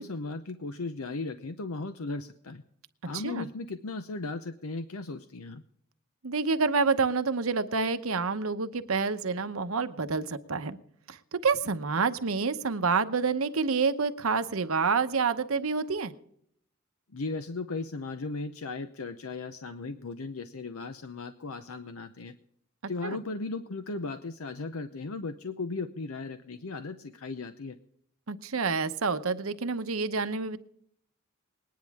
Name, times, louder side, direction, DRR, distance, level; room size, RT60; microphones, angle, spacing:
voice 1, 0.0-2.6 3.1-5.6 17.1-22.3 22.9-27.8, left 3 dB, 80° left, 9 dB, 0.7 m, -36 dB
voice 2, 3.1-3.5 6.2-10.8 11.1-16.1 23.0-23.2 28.3-30.6, right 4 dB, 70° right, 10 dB, 0.9 m, -28 dB
20.5 x 10.5 x 3.6 m, 0.69 s
head